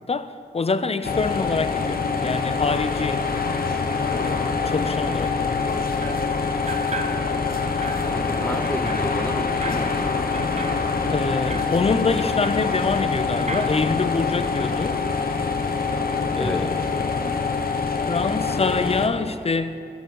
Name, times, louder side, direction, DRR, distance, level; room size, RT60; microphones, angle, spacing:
voice 1, 0.0-3.3 4.2-5.7 11.1-15.0 16.3-16.9 18.1-19.8, left 4 dB, 35° left, 0.6 m, -25 dB
sound 1, 1.0-19.1, left 4 dB, 60° left, 1.0 m, -25 dB
sound 2, 6.0-6.3 6.7-7.5 7.8-13.2 13.5-13.8, right 3 dB, 40° right, 0.9 m, -36 dB
voice 2, 8.1-9.9 16.4-16.6, equal, 10° left, 1.0 m, -30 dB
16.5 x 6.0 x 7.1 m
wide cardioid pair, 85°, 17 cm